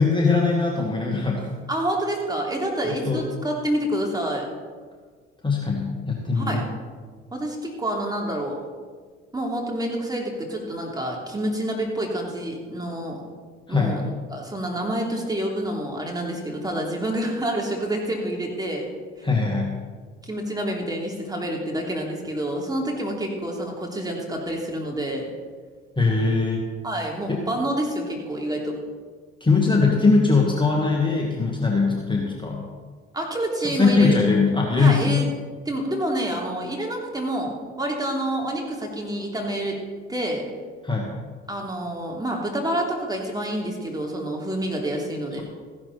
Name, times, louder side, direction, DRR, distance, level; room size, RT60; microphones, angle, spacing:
voice 1, 0.0-1.4 3.1-3.2 5.4-6.6 13.7-14.0 19.2-19.7 26.0-26.6 27.3-27.4 29.4-32.6 33.6-35.2 40.8-41.1, left 4 dB, 15° left, -1 dB, 2.1 m, -21 dB
voice 2, 1.7-4.5 6.3-6.6 7.3-8.6 9.3-13.2 13.7-18.9 19.2-19.3 20.2-25.3 26.8-28.8 33.1-34.2 34.8-35.3 35.6-39.8 40.1-40.5 41.5-45.4, right 1 dB, 10° right, -1 dB, 3.2 m, -28 dB
15.0 x 11.5 x 4.3 m, 1.5 s
figure-of-eight pair, 55°, 32 cm